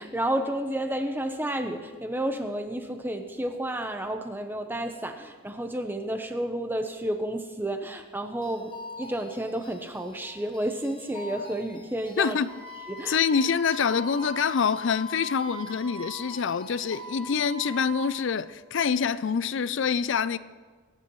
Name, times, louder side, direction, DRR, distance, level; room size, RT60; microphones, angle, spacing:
voice 1, 0.0-12.4 12.9-13.2, right 1 dB, 10° right, 0.8 m, -31 dB
sound 1, 8.4-17.5, left 3 dB, 25° left, 0.9 m, -47 dB
voice 2, 12.2-12.5 13.1-20.4, left 6 dB, 60° left, 0.4 m, -26 dB
Wind instrument woodwind instrument, 12.5-18.1, right 1 dB, 30° right, 3.7 m, -41 dB
22.0 x 10.0 x 3.1 m
head